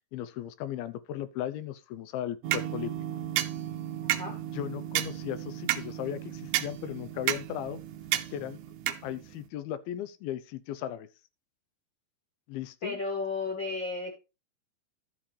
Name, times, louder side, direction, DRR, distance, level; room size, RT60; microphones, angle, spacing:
voice 1, 0.1-2.9 4.5-7.8 8.3-8.6 8.9-11.1 12.5-13.0, left 11 dB, 90° left, 2.6 m, -36 dB
sound 1, 2.4-9.5, right 13 dB, 85° right, 1.7 m, -33 dB
voice 2, 12.8-14.2, left 3 dB, 45° left, 1.5 m, -33 dB
12.5 x 7.3 x 3.2 m
omnidirectional pair, 4.2 m